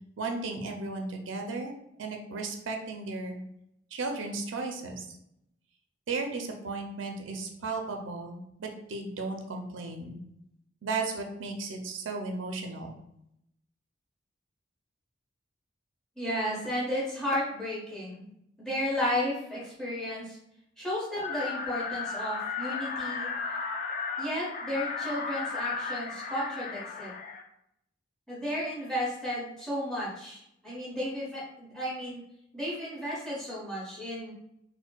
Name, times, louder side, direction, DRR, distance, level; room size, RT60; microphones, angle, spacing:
voice 1, 0.2-1.7 2.0-3.4 3.9-5.1 6.1-10.2 10.8-12.9, right 3 dB, 80° right, 2 dB, 0.5 m, -35 dB
voice 2, 16.2-18.2 18.6-20.4 20.8-23.3 24.2-27.1 28.3-32.2 32.5-34.3, equal, 5° left, -8 dB, 1.1 m, -33 dB
sound 1, 21.2-27.4, left 5 dB, 45° left, 0.3 m, -35 dB
4.3 x 2.1 x 2.2 m, 0.77 s
head